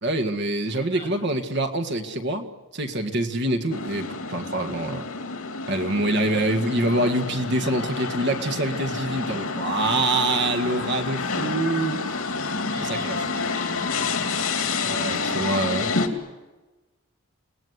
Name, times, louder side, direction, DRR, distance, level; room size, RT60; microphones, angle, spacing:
voice 1, 0.0-2.5 2.7-5.1 5.7-12.2 12.8-13.2 14.8-15.9, right 1 dB, 50° right, 6 dB, 2.0 m, -25 dB
voice 2, 0.7-1.4 4.7-4.8 12.7-15.2, equal, 25° right, 3 dB, 7.0 m, -42 dB
sound 1, 3.7-16.1, left 4 dB, 75° left, 3.0 m, -29 dB
28.5 x 19.5 x 9.7 m, 1.1 s
head